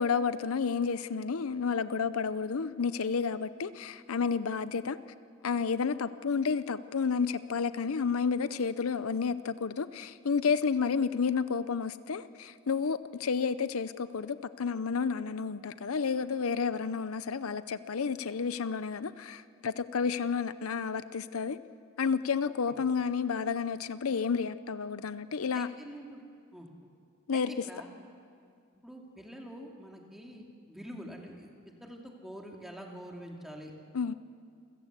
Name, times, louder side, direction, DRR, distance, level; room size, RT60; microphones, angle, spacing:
voice 1, 0.0-5.0 5.4-21.6 22.0-25.7 27.3-27.5 33.9-34.1, left 5 dB, 85° left, 14 dB, 0.6 m, -31 dB
voice 2, 25.5-26.2 26.5-26.7 27.3-27.9 28.7-31.5 31.8-33.7, equal, ahead, 0 dB, 2.6 m, -46 dB
28.5 x 15.5 x 8.1 m, 2.3 s
head